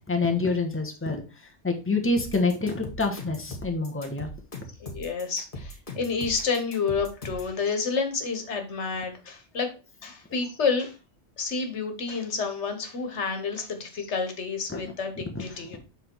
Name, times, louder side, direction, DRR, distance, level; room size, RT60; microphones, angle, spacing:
voice 1, 0.1-1.2 1.6-4.3 14.7-14.8, left 3 dB, 10° left, 3 dB, 1.1 m, -26 dB
sound 1, 2.2-7.5, left 1 dB, 50° left, 2.1 m, -39 dB
voice 2, 4.8-9.7 10.0-11.0 11.4-15.8, left 5 dB, 85° left, 6 dB, 1.5 m, -29 dB
7.6 x 3.9 x 4.5 m, 0.32 s
omnidirectional pair, 1.1 m